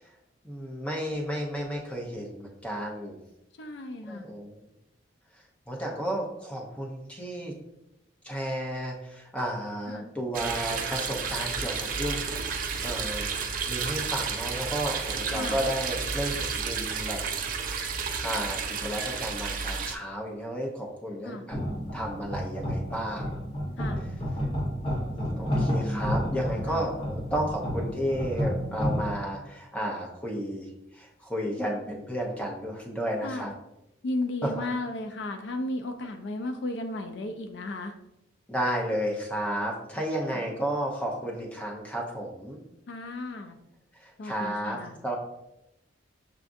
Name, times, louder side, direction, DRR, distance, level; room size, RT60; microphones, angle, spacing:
voice 1, 0.4-3.2 4.1-4.6 5.7-7.5 8.2-13.3 13.6-17.2 18.2-21.6 21.9-23.3 24.7-24.8 25.1-30.7 30.9-33.5 34.4-34.5 38.5-42.6 44.0-45.1, equal, 5° left, -2 dB, 0.6 m, -32 dB
voice 2, 3.6-4.3 9.9-10.1 15.3-15.6 21.2-21.5 23.8-24.0 26.7-26.9 33.2-33.5 34.0-37.9 40.3-40.5 42.9-43.6 44.2-45.0, left 2 dB, 60° left, 6 dB, 0.4 m, -34 dB
sound 1, 10.3-20.0, right 5 dB, 45° right, 0.4 m, -31 dB
sound 2, 21.5-29.2, equal, 30° left, 0.9 m, -30 dB
6.9 x 2.4 x 2.5 m, 0.87 s
head